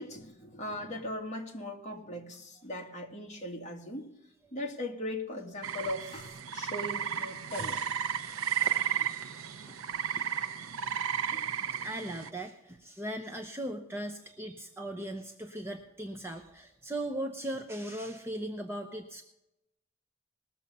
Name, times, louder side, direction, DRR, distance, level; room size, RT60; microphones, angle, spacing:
voice 1, 0.0-4.1 4.5-7.8 11.3-11.5, left 1 dB, 35° left, 0 dB, 1.9 m, -39 dB
sound 1, 5.6-12.3, right 8 dB, 80° right, 0.6 m, -33 dB
voice 2, 8.6-9.8 10.2-10.3 11.3-19.2, right 1 dB, 10° right, 3 dB, 0.8 m, -39 dB
20.0 x 7.1 x 5.4 m, 0.87 s
head